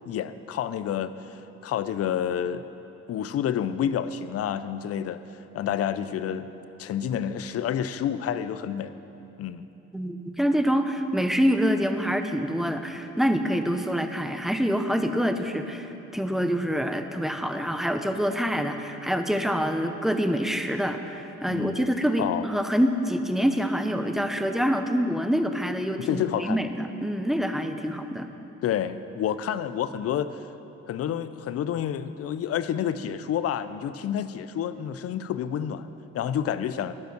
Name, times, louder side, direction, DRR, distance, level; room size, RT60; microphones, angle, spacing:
voice 1, 0.0-2.7 3.1-5.2 5.5-6.5 6.8-8.9 9.4-9.6 21.5-21.9 22.2-22.4 26.1-26.6 28.6-30.4 30.9-35.9 36.1-36.9, left 9 dB, 50° left, 13 dB, 0.5 m, -29 dB
voice 2, 9.9-28.3, equal, ahead, 7 dB, 0.5 m, -26 dB
10.5 x 5.3 x 6.6 m, 2.9 s
cardioid pair, 90°, 30 cm